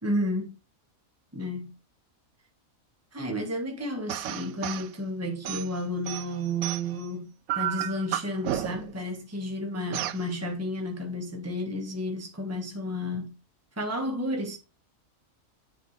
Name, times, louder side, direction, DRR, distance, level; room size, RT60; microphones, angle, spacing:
voice 1, 0.0-0.5 1.3-1.7 3.1-13.3 13.8-14.6, equal, 10° right, 1.4 m, -32 dB
sound 1, 4.1-4.9 5.4-7.1 7.5-9.0 9.9-10.2, right 12 dB, 90° right, 1.0 m, -32 dB
10.0 x 4.4 x 3.2 m
omnidirectional pair, 1.4 m